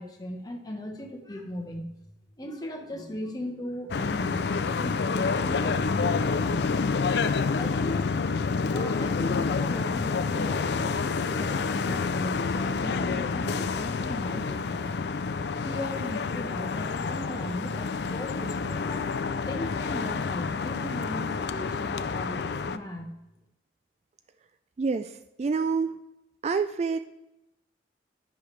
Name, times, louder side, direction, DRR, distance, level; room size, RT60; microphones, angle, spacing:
voice 1, 0.0-1.9 2.4-6.7 7.5-8.1 8.6-14.9 15.6-19.1 19.5-23.1, left 1 dB, 20° left, 2 dB, 1.1 m, -38 dB
sound 1, 3.9-22.8, left 4 dB, 65° left, 0.4 m, -28 dB
voice 2, 24.8-25.9 26.4-27.0, right 5 dB, 35° right, 11 dB, 0.3 m, -27 dB
10.5 x 10.0 x 3.2 m, 0.91 s
head